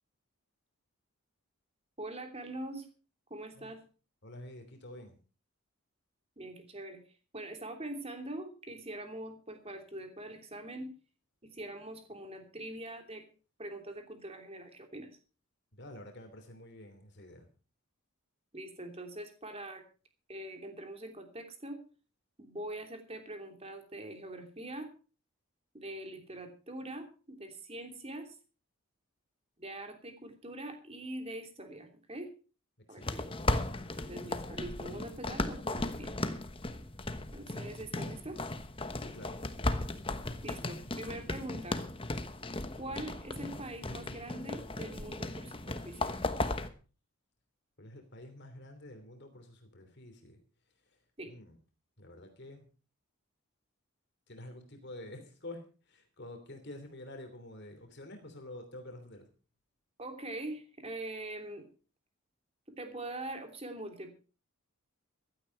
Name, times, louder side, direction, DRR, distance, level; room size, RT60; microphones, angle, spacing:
voice 1, 2.0-2.9 3.3-3.8 6.4-7.0 7.3-10.9 11.4-13.2 13.6-15.1 18.5-19.8 20.3-21.8 22.4-24.9 25.7-28.4 29.6-32.3 32.9-33.3 34.1-36.1 37.3-38.4 40.4-41.8 42.8-46.1 51.2-51.3 60.0-61.7 62.7-64.1, right 1 dB, 25° right, 5 dB, 3.0 m, -43 dB
voice 2, 4.2-5.2 15.7-17.5 32.9-33.1 38.9-39.4 47.8-50.4 51.3-51.6 52.0-52.6 54.3-59.2, left 1 dB, 50° left, 5 dB, 3.0 m, -48 dB
sound 1, 33.0-46.7, left 2 dB, 25° left, 1.1 m, -36 dB
15.5 x 12.5 x 4.6 m, 0.37 s
head